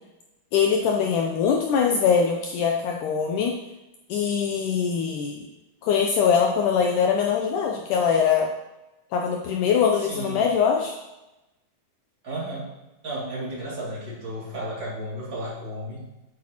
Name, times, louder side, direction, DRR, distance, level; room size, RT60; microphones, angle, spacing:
voice 1, 0.5-3.6 4.1-5.5 5.8-8.5 9.1-11.0, left 6 dB, 80° left, 1 dB, 1.9 m, -22 dB
voice 2, 10.0-10.4 12.2-12.7 13.0-16.0, right 1 dB, 35° right, -6 dB, 2.8 m, -33 dB
8.6 x 8.2 x 3.0 m, 0.99 s
omnidirectional pair, 4.3 m